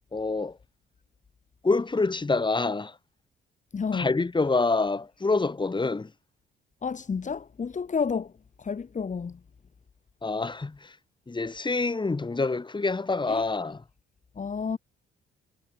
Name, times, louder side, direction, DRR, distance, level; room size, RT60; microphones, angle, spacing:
voice 1, 0.1-0.6 1.6-3.0 3.9-6.1 10.2-11.0 11.3-13.8, left 3 dB, 25° left, 7.4 m, -26 dB
voice 2, 3.7-4.1 6.8-8.3 8.6-9.4 13.3-13.4 14.4-14.8, left 5 dB, 40° left, 4.9 m, -30 dB
cardioid pair, 90°, 20 cm